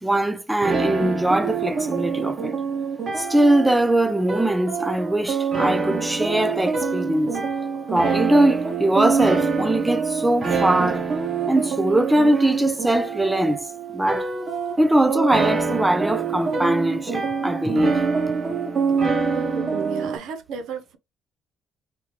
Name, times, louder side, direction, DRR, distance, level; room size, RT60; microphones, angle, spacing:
voice 1, 0.0-2.6 3.2-7.4 7.9-11.1 11.5-14.3 14.8-18.0, right 1 dB, 10° right, 0.5 m, -21 dB
sound 1, 0.6-20.2, right 5 dB, 45° right, 1.4 m, -25 dB
voice 2, 19.3-21.0, right 6 dB, 80° right, 0.7 m, -33 dB
3.6 x 3.0 x 3.0 m
cardioid pair, 95°, 0 cm